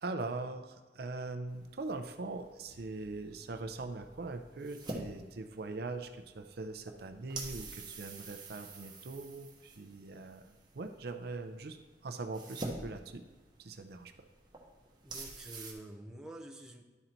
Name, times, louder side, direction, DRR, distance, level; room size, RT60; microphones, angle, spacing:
voice 1, 0.0-13.2 13.6-14.3, right 3 dB, 60° right, 7 dB, 0.5 m, -41 dB
sound 1, 1.5-15.7, right 2 dB, 25° right, 1.1 m, -48 dB
sound 2, 2.1-8.3, equal, 40° left, 1.2 m, -66 dB
voice 2, 15.0-16.8, right 1 dB, 5° right, 1 dB, 0.6 m, -48 dB
11.0 x 3.9 x 4.4 m, 1.3 s
head